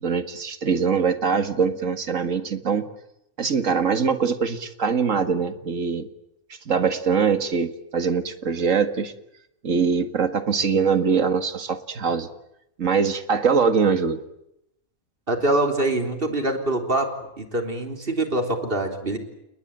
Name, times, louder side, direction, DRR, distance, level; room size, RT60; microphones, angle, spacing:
voice 1, 0.0-2.9 3.4-6.1 6.7-9.1 9.6-12.3 12.8-14.2, right 6 dB, 60° right, 10 dB, 2.2 m, -22 dB
voice 2, 15.3-17.1 17.4-19.2, right 2 dB, 40° right, 5 dB, 3.7 m, -24 dB
30.0 x 20.0 x 9.1 m, 0.82 s
omnidirectional pair, 1.5 m